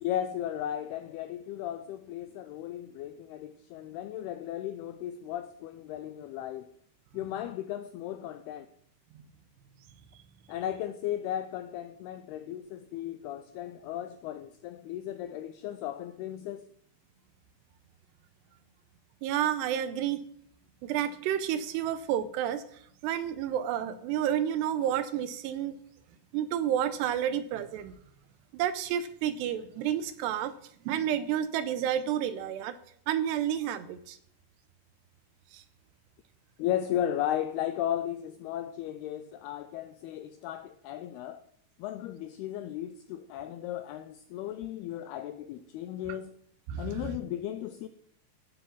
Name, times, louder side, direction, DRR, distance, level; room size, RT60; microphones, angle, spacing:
voice 1, 0.0-6.7 7.1-8.7 10.5-16.7 36.6-41.4 41.8-46.3 46.8-47.9, left 11 dB, 85° left, 2.2 m, -35 dB
voice 2, 19.2-20.2 20.8-22.6 23.0-25.8 26.3-27.9 28.5-30.5 30.9-32.7 33.1-34.2 35.5-35.6 46.7-47.1, right 10 dB, 80° right, 2.7 m, -30 dB
16.0 x 7.8 x 7.3 m
omnidirectional pair, 5.3 m